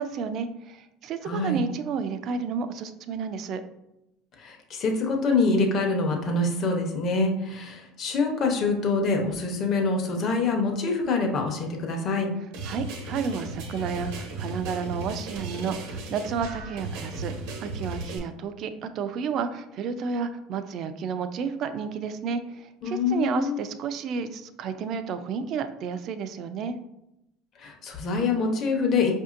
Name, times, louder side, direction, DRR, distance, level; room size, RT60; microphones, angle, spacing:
voice 1, 0.0-3.6 12.6-17.3 17.6-26.8, right 6 dB, 50° right, 10 dB, 0.4 m, -31 dB
voice 2, 1.2-1.6 4.4-12.3 22.8-23.6 27.6-29.1, left 3 dB, 50° left, 3 dB, 0.8 m, -25 dB
sound 1, 12.5-18.2, right 3 dB, 75° right, 0.8 m, -35 dB
4.9 x 2.7 x 2.5 m, 0.87 s
supercardioid pair, 105°, 0 cm